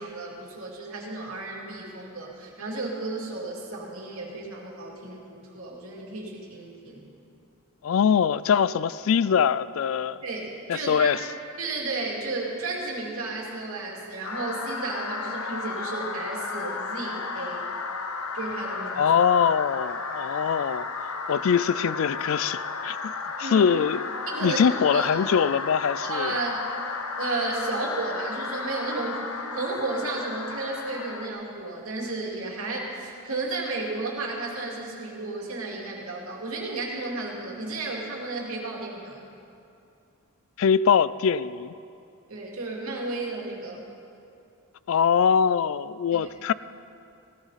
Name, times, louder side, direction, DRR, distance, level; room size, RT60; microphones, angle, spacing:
voice 1, 0.0-7.1 10.2-11.2 11.6-17.7 18.3-19.1 23.4-23.7 24.3-25.1 26.0-26.7 27.2-39.2 42.3-43.8 46.1-46.2, right 2 dB, 80° right, -2 dB, 2.6 m, -33 dB
voice 2, 7.8-10.2 10.7-11.2 19.0-20.9 21.3-23.1 23.4-24.0 24.4-26.3 40.6-41.7 44.9-46.5, left 7 dB, 65° left, 17 dB, 0.3 m, -23 dB
sound 1, 14.2-31.3, left 4 dB, 85° left, 1.0 m, -33 dB
16.5 x 14.5 x 4.1 m, 2.5 s
head